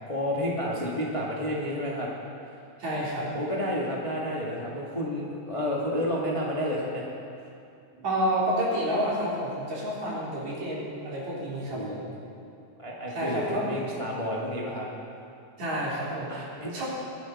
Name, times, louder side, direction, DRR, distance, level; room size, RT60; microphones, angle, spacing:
voice 1, 0.1-2.1 3.3-7.0 11.7-12.5 12.8-14.9 16.3-16.8, equal, 20° left, -4 dB, 0.8 m, -31 dB
voice 2, 2.8-3.3 7.9-12.1 13.1-13.6 15.6-16.4 16.7-16.9, right 1 dB, 60° right, -7 dB, 4.9 m, -29 dB
22.0 x 11.5 x 4.2 m, 2.5 s
omnidirectional pair, 3.7 m